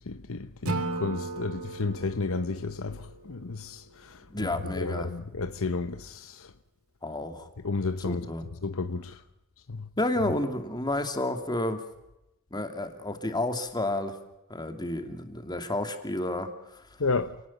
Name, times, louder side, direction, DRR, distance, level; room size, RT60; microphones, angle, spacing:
voice 1, 0.0-6.5 7.6-8.3 8.6-9.2 9.7-9.9 17.0-17.4, left 3 dB, 65° left, 0.9 m, -32 dB
Acoustic guitar / Strum, 0.7-3.8, right 2 dB, 70° right, 3.1 m, -36 dB
voice 2, 4.3-5.1 7.0-7.5 8.1-8.5 10.0-11.8 12.5-14.2 14.5-16.9, left 1 dB, 20° left, 2.8 m, -31 dB
29.0 x 19.0 x 7.5 m
head